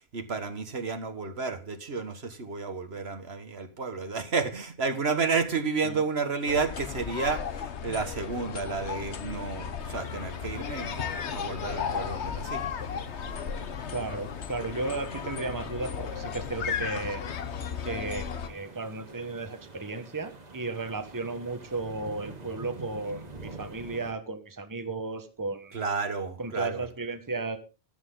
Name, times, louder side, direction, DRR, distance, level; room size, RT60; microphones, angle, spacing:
voice 1, 0.1-12.6 25.7-26.8, right 4 dB, 70° right, 1.7 m, -31 dB
sound 1, 6.5-18.5, left 7 dB, 85° left, 1.3 m, -35 dB
sound 2, 9.8-24.1, right 3 dB, 40° right, 1.6 m, -48 dB
voice 2, 13.9-17.2 17.8-25.8 26.4-27.6, right 3 dB, 20° right, 1.3 m, -34 dB
14.0 x 12.5 x 3.9 m
omnidirectional pair, 1.1 m